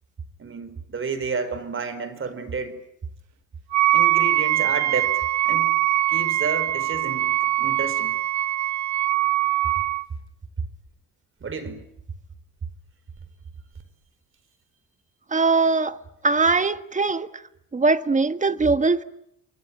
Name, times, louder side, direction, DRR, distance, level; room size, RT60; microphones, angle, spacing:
voice 1, 0.4-2.8 3.9-5.7 6.1-8.2 11.4-11.8, right 4 dB, 45° right, 4.9 m, -31 dB
Wind instrument woodwind instrument, 3.7-10.0, right 14 dB, 65° right, 1.1 m, -22 dB
voice 2, 15.3-16.0 16.2-17.3 17.7-19.0, right 3 dB, 25° right, 1.4 m, -21 dB
29.0 x 23.5 x 8.9 m
cardioid pair, 90°, 30 cm